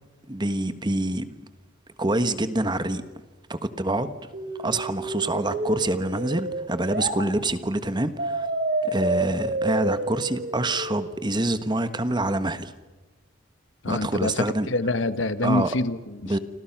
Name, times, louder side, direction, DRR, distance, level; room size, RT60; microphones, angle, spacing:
voice 1, 0.3-1.2 2.0-3.0 3.5-4.1 4.6-8.5 8.9-12.7 13.9-14.7 15.4-15.7 16.3-16.4, right 2 dB, 20° right, 1.3 m, -26 dB
sound 1, 4.3-7.2 8.2-11.2, right 2 dB, 45° right, 3.4 m, -29 dB
voice 2, 13.8-16.4, left 2 dB, 70° left, 1.3 m, -26 dB
30.0 x 25.5 x 6.0 m
head